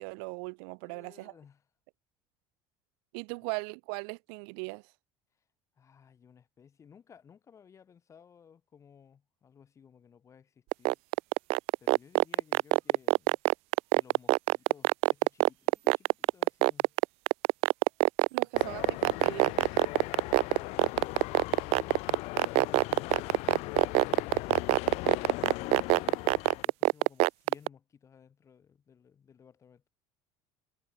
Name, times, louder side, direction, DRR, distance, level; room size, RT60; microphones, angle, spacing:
voice 1, 0.0-1.3 3.1-4.9 18.3-19.7, right 40 dB or more, 85° right, 3.1 m, -39 dB
voice 2, 0.8-1.6 5.8-11.0 11.8-13.4 13.9-16.9 18.3-18.5 19.9-22.1 22.5-29.9, left 7 dB, 25° left, 4.6 m, -58 dB
sound 1, 10.7-27.7, right 25 dB, 60° right, 0.4 m, -23 dB
sound 2, 18.5-26.6, left 24 dB, 65° left, 0.8 m, -39 dB
cardioid pair, 155°, 12 cm